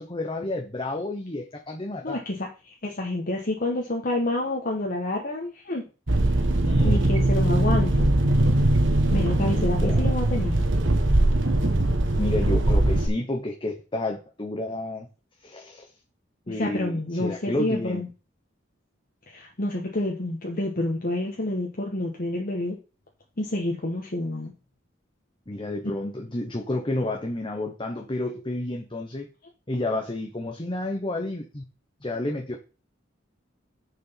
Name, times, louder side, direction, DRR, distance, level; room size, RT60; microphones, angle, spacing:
voice 1, 0.0-2.2 6.7-7.0 9.4-10.0 12.2-15.1 15.4-15.9 16.5-18.0 25.5-29.3 29.7-31.6 32.0-32.6, left 1 dB, 25° left, 1 dB, 1.1 m, -30 dB
voice 2, 2.0-5.8 6.8-8.1 9.1-10.5 16.5-18.1 19.3-22.8 23.4-24.5 29.7-29.8, left 1 dB, 45° left, 0 dB, 1.4 m, -28 dB
sound 1, 6.1-13.1, right 1 dB, 70° right, 1.5 m, -21 dB
6.9 x 6.5 x 5.8 m, 0.33 s
head